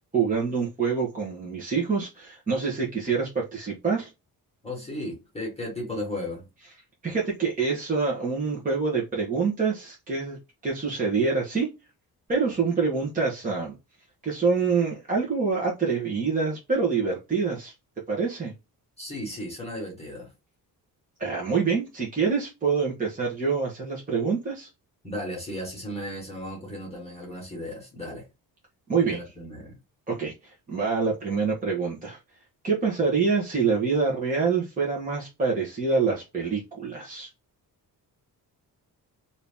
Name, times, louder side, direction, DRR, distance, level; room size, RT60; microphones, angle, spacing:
voice 1, 0.1-4.1 7.0-11.7 12.3-13.7 14.2-17.7 18.1-18.5 21.2-24.7 28.9-29.2 30.1-32.2 32.6-37.3, right 5 dB, 20° right, 1.0 m, -26 dB
voice 2, 4.6-6.5 19.0-20.3 25.0-28.3 29.0-29.8, left 1 dB, 15° left, 1.3 m, -35 dB
2.8 x 2.8 x 3.5 m
wide cardioid pair, 165°, 38 cm